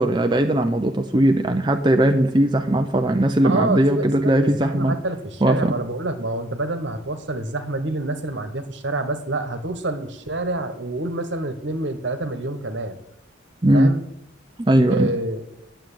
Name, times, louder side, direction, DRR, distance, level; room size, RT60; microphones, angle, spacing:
voice 1, 0.0-5.0 5.4-5.7 13.6-13.9 14.6-15.1, right 1 dB, 25° right, 5 dB, 0.6 m, -19 dB
voice 2, 3.4-13.0 13.7-14.0 14.9-15.4, right 2 dB, 65° right, 9 dB, 1.4 m, -27 dB
9.3 x 7.7 x 9.2 m, 0.80 s
head